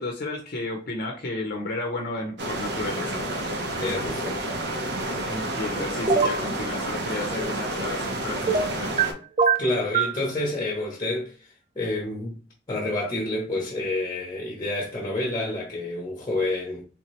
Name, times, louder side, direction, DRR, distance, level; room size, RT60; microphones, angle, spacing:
voice 1, 0.0-3.2 5.3-8.9, left 2 dB, 55° left, 0.6 m, -32 dB
sound 1, 2.4-9.1, right 1 dB, 60° right, 0.8 m, -30 dB
voice 2, 3.8-4.4 9.6-11.5 11.8-12.4 12.7-16.8, left 2 dB, 20° left, 0.8 m, -28 dB
sound 2, 6.1-6.4 8.5-9.1 9.4-10.2, right 5 dB, 35° right, 0.4 m, -22 dB
3.4 x 2.8 x 3.1 m
head